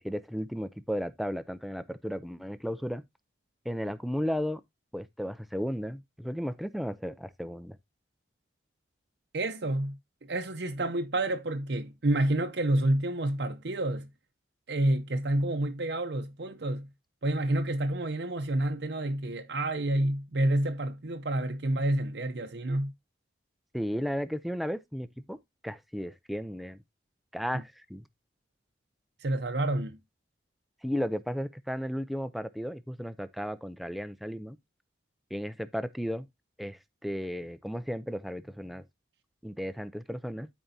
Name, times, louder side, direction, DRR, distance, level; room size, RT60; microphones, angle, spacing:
voice 1, 0.0-3.0 3.6-4.6 4.9-7.8 23.7-25.4 25.6-26.8 27.3-28.0 30.8-34.6 35.3-36.3 36.6-38.9 39.4-40.5, equal, ahead, 0.4 m, -34 dB
voice 2, 9.3-14.1 14.7-16.9 17.2-22.9 29.2-30.0, right 1 dB, 65° right, 0.7 m, -29 dB
12.5 x 4.6 x 2.7 m
head